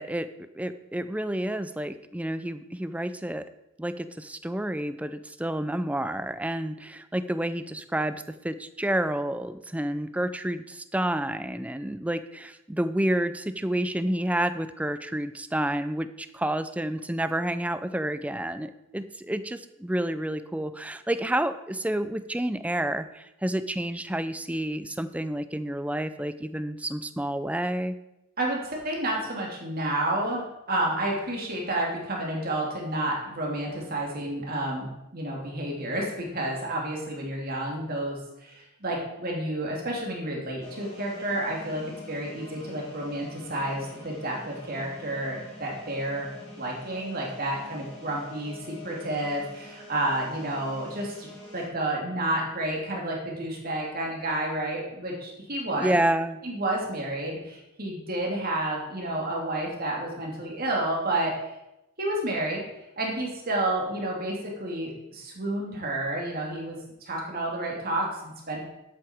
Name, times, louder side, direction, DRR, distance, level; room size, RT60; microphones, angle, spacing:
voice 1, 0.0-3.5 3.8-28.0 55.8-56.4, right 1 dB, 5° right, 12 dB, 0.4 m, -29 dB
voice 2, 28.4-41.8 42.1-46.3 46.6-56.0 56.4-61.3 62.0-62.6 63.0-66.8 67.1-68.6, right 1 dB, 40° right, -2 dB, 2.8 m, -30 dB
sound 1, 40.6-51.7, left 2 dB, 30° left, 3.7 m, -45 dB
12.0 x 8.5 x 4.5 m, 0.91 s
head